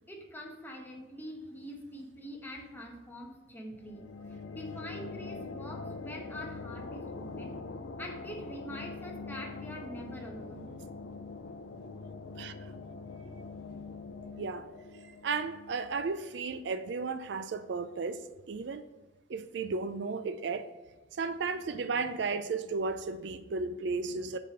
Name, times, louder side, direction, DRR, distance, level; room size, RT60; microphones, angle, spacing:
voice 1, 0.1-4.0 4.5-7.5 8.0-10.7, equal, 10° left, 1.1 m, -44 dB
sound 1, 3.7-17.1, left 3 dB, 90° left, 0.6 m, -43 dB
voice 2, 12.4-12.7 14.4-14.7 15.1-18.8 19.3-20.7 21.1-24.4, right 4 dB, 65° right, 0.4 m, -34 dB
6.6 x 4.1 x 6.4 m
head